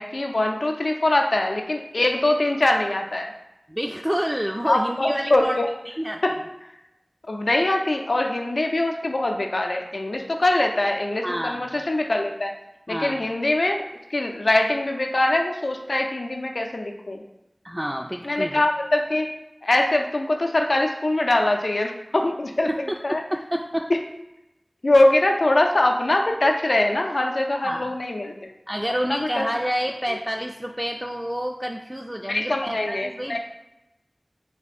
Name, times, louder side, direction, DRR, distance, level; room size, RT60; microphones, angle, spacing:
voice 1, 0.0-3.3 4.6-5.7 6.2-6.3 7.3-12.6 12.9-13.8 14.1-17.2 18.2-19.3 19.6-22.7 23.0-23.2 23.9-24.0 24.8-28.6 29.0-29.4 30.1-30.2 32.3-33.4, left 1 dB, 85° left, 3 dB, 0.5 m, -23 dB
voice 2, 3.7-6.4 11.2-11.8 12.9-13.3 17.6-18.6 22.7-23.9 27.6-27.9 28.7-33.4, equal, 15° right, 1 dB, 0.3 m, -29 dB
3.5 x 3.1 x 4.2 m, 0.93 s
wide cardioid pair, 40°, 0 cm